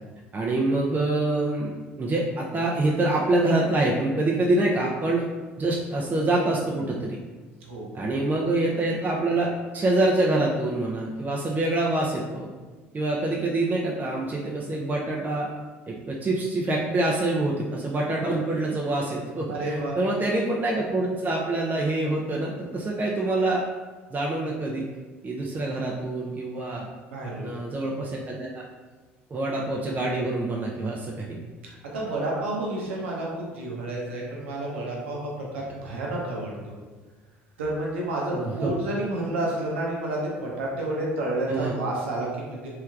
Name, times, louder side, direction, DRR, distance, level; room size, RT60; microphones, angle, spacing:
voice 1, 0.3-5.3 5.6-7.2 7.9-12.5 12.9-15.5 15.9-23.6 24.1-24.8 25.2-26.9 27.4-28.6 29.3-31.4 38.3-38.7 41.5-41.8, right 2 dB, 25° right, -3 dB, 0.5 m, -26 dB
voice 2, 19.5-20.0 27.0-27.5 31.9-36.7 37.6-42.7, right 1 dB, 80° right, -3 dB, 0.7 m, -30 dB
3.3 x 3.2 x 2.4 m, 1.4 s
hypercardioid pair, 65°, 6 cm